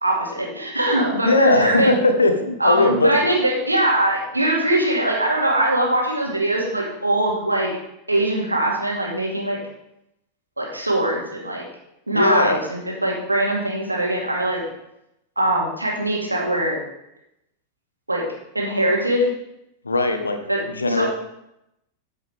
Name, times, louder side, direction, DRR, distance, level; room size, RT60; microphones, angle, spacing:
voice 1, 0.0-2.0 2.6-7.7 8.1-9.6 10.6-11.6 12.1-14.6 15.4-16.8 18.1-18.3 18.5-19.3 20.5-20.6 20.9-21.1, right 1 dB, 85° right, -2 dB, 2.3 m, -21 dB
voice 2, 1.2-3.2 12.1-12.6 19.8-20.4 20.7-21.1, left 2 dB, 75° left, 7 dB, 1.0 m, -19 dB
14.0 x 5.6 x 3.4 m, 0.82 s
figure-of-eight pair, 90°, 0 cm